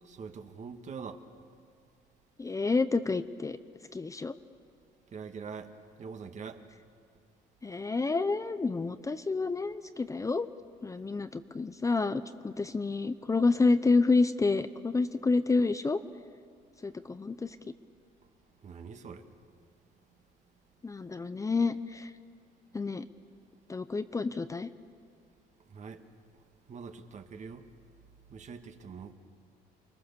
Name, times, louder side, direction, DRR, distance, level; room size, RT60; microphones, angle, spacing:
voice 1, 0.0-1.2 5.1-5.7 6.0-6.7 18.6-19.3 25.7-26.0 26.3-27.7 28.3-29.1, right 5 dB, 45° right, 1.7 m, -44 dB
voice 2, 2.4-3.6 3.9-4.3 7.6-10.5 10.8-16.0 16.8-17.6 20.8-22.1 22.7-23.1 23.7-24.7, left 3 dB, 20° left, 0.7 m, -29 dB
29.0 x 21.5 x 7.0 m
cardioid pair, 110°, 17 cm